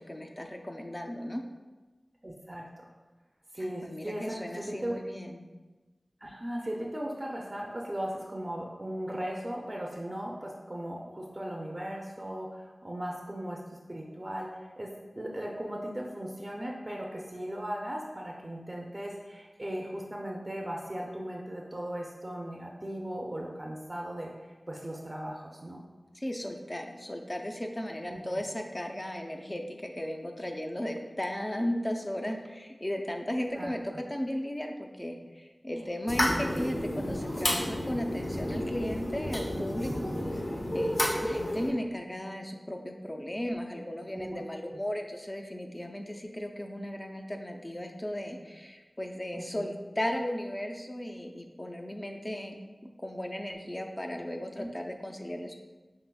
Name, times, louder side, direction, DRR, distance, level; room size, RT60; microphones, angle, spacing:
voice 1, 0.0-1.4 3.6-5.5 26.1-40.4 40.7-52.5 52.8-55.5, left 1 dB, 30° left, 3 dB, 0.5 m, -36 dB
voice 2, 2.2-2.9 3.5-4.9 6.2-25.8 28.1-28.2 33.5-33.7 35.7-35.9 36.3-36.8 39.5-39.6 39.9-40.1 44.1-44.4 44.7-44.8 49.3-49.7 54.6-54.7, right 1 dB, 35° right, -1 dB, 0.5 m, -38 dB
sound 1, 36.1-41.7, left 1 dB, 60° left, 0.7 m, -31 dB
5.6 x 3.0 x 2.3 m, 1.2 s
wide cardioid pair, 45°, 0 cm